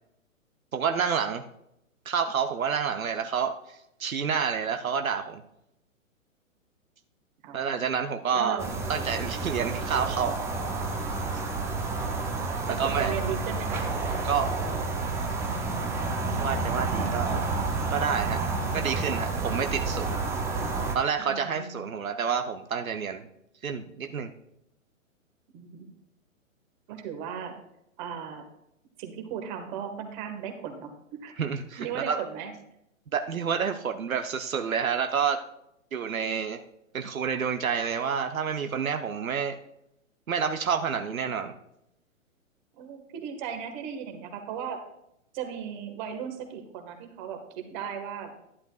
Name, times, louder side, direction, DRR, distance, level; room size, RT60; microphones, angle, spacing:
voice 1, 0.7-1.4 2.1-5.4 7.5-8.6 8.9-10.4 12.7-13.1 14.2-14.5 16.4-17.5 17.9-18.4 18.7-20.2 20.9-23.2 23.6-24.3 31.4-32.2 33.1-35.4 35.9-36.6 36.9-39.6 40.3-41.5, right 6 dB, 85° right, 7 dB, 0.9 m, -29 dB
voice 2, 8.3-8.7 12.7-13.9 21.2-21.9 25.5-25.9 26.9-27.6 28.0-28.4 29.0-31.3 31.8-32.5 42.8-44.8 45.3-48.3, right 8 dB, 35° right, 5 dB, 1.6 m, -36 dB
sound 1, 8.6-21.0, right 3 dB, 5° right, 0.5 m, -30 dB
12.0 x 11.0 x 2.4 m, 0.80 s
hypercardioid pair, 125°, 40 cm